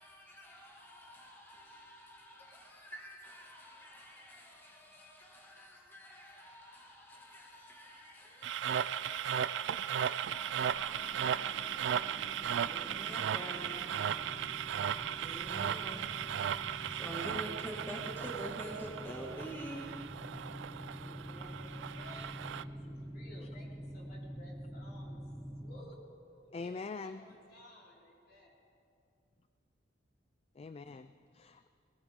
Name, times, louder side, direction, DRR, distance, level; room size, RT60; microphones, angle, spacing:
voice 1, 0.0-11.9 12.6-13.9 15.1-16.1 16.9-19.9, right 1 dB, 10° left, -2 dB, 1.9 m, -47 dB
sound 1, 8.4-22.6, right 9 dB, 70° right, 0.3 m, -36 dB
sound 2, 10.3-25.8, equal, 5° right, 0.9 m, -47 dB
voice 2, 20.9-25.2 25.6-26.0 26.3-28.6, left 1 dB, 55° left, -4 dB, 3.8 m, -56 dB
voice 3, 26.5-27.4 30.6-31.7, left 4 dB, 30° left, 10 dB, 0.3 m, -43 dB
20.5 x 18.5 x 3.6 m, 2.5 s
head